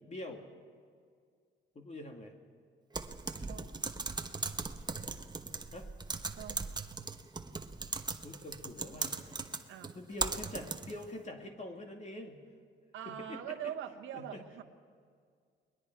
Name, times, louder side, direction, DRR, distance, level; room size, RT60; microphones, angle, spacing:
voice 1, 0.1-0.4 1.8-2.3 5.7-5.9 8.0-9.2 9.9-12.4 13.1-13.4 14.1-14.4, left 1 dB, 35° left, 3 dB, 2.3 m, -45 dB
Typing, 2.9-11.1, right 3 dB, 20° right, 1.1 m, -39 dB
voice 2, 3.4-3.9 6.3-6.8 9.7-9.9 12.9-14.6, right 10 dB, 80° right, 5 dB, 1.1 m, -43 dB
29.5 x 21.0 x 4.6 m, 2.1 s
cardioid pair, 90°, 20 cm